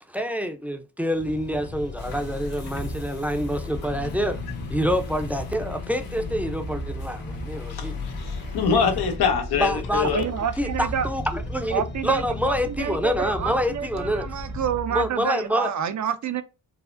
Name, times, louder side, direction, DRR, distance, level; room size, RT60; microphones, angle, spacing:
voice 1, 0.1-4.4 4.7-8.1 8.7-8.8 9.5-10.1 10.6-14.4 14.9-15.7, equal, 5° right, 0.5 m, -27 dB
sound 1, 1.1-14.8, left 3 dB, 30° left, 0.8 m, -36 dB
sound 2, 2.0-9.2, left 6 dB, 65° left, 1.2 m, -39 dB
sound 3, 2.8-15.3, right 5 dB, 80° right, 1.0 m, -41 dB
voice 2, 8.2-10.3, left 6 dB, 85° left, 0.8 m, -24 dB
voice 3, 10.1-11.1 11.7-16.4, right 8 dB, 50° right, 0.5 m, -28 dB
4.7 x 2.1 x 2.5 m
cardioid pair, 75°, 37 cm